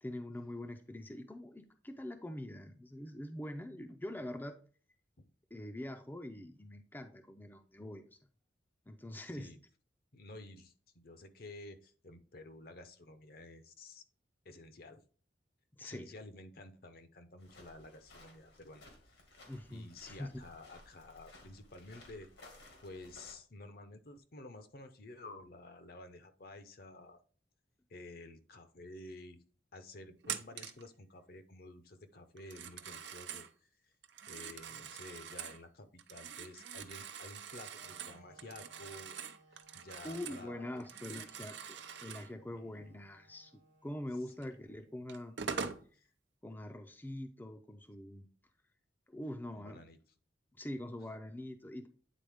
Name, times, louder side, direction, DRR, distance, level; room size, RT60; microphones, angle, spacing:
voice 1, 0.0-4.6 5.5-8.2 8.9-9.5 15.7-16.1 19.5-20.3 40.0-41.6 42.0-43.5 43.8-45.5 46.4-48.3 49.1-49.8 50.5-51.9, left 1 dB, 10° left, 5 dB, 0.5 m, -44 dB
voice 2, 10.1-14.0 14.4-15.0 15.8-18.8 19.7-22.3 22.8-27.2 27.9-29.4 29.7-33.9 34.3-39.2 39.5-40.8 42.5-42.6 49.6-50.0, left 2 dB, 55° left, 9 dB, 0.7 m, -52 dB
sound 1, 17.4-23.3, left 2 dB, 90° left, 2.1 m, -58 dB
Telephone, 30.2-30.9 32.4-33.5 34.0-35.6 36.0-40.5 40.8-42.3 44.4-44.5 45.1-45.8, right 7 dB, 80° right, 0.6 m, -44 dB
Wind instrument woodwind instrument, 37.7-45.7, right 2 dB, 50° right, 1.3 m, -65 dB
9.2 x 4.0 x 3.5 m, 0.41 s
head